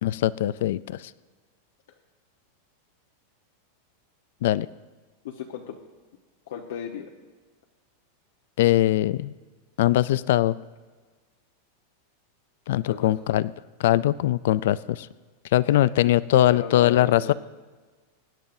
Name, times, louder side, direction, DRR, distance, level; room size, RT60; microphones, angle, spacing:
voice 1, 0.0-1.1 4.4-4.7 8.6-9.3 9.8-10.6 12.7-13.5 13.8-15.1 15.5-17.3, left 14 dB, 60° left, 18 dB, 0.3 m, -21 dB
voice 2, 5.2-5.8 6.5-7.1 12.8-13.1 15.6-16.0 16.5-17.3, left 8 dB, 75° left, 0 dB, 1.1 m, -35 dB
24.0 x 10.5 x 2.7 m, 1.4 s
supercardioid pair, 175°, 0 cm